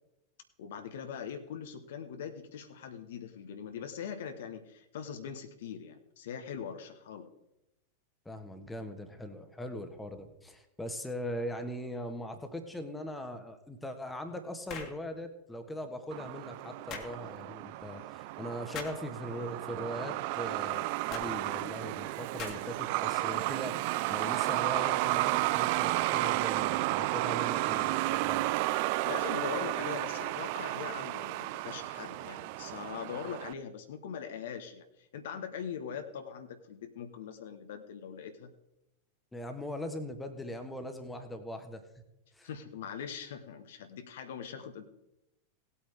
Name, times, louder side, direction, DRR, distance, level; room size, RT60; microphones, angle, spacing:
voice 1, 0.6-7.3 29.0-38.5 42.4-44.9, left 7 dB, 60° left, 8 dB, 1.1 m, -41 dB
voice 2, 8.2-28.5 39.3-41.9 42.3-42.5, equal, 5° left, 7 dB, 1.4 m, -40 dB
sound 1, 14.7-15.0 16.9-17.1 18.7-19.0 21.1-21.3 22.4-22.8, left 6 dB, 35° left, 1.9 m, -41 dB
Truck, 16.1-33.5, right 19 dB, 45° right, 0.3 m, -32 dB
18.5 x 8.6 x 3.5 m, 0.90 s
figure-of-eight pair, 90°, 0 cm